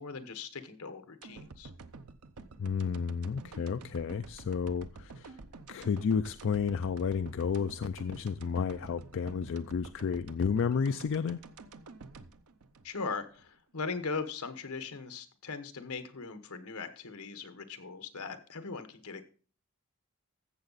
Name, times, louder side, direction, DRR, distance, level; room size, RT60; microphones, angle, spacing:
voice 1, 0.0-1.7 12.8-19.2, left 4 dB, 75° left, 1.2 m, -39 dB
sound 1, 1.2-13.4 13.8-13.9, right 3 dB, 90° right, 0.7 m, -49 dB
voice 2, 2.6-5.4 5.7-11.4, left 6 dB, 60° left, 0.4 m, -31 dB
14.5 x 7.2 x 4.0 m
head